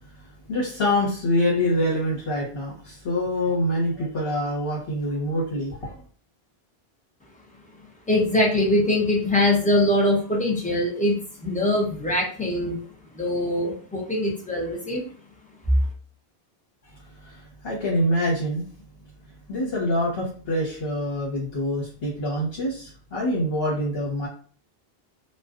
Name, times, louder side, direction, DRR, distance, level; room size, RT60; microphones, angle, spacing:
voice 1, 0.5-6.0 16.8-16.9 17.2-18.7 19.5-24.3, left 1 dB, 70° left, -5 dB, 1.1 m, -25 dB
voice 2, 8.1-12.8 13.1-15.0, left 1 dB, 10° left, -1 dB, 0.4 m, -23 dB
2.4 x 2.1 x 2.4 m, 0.43 s
omnidirectional pair, 1.0 m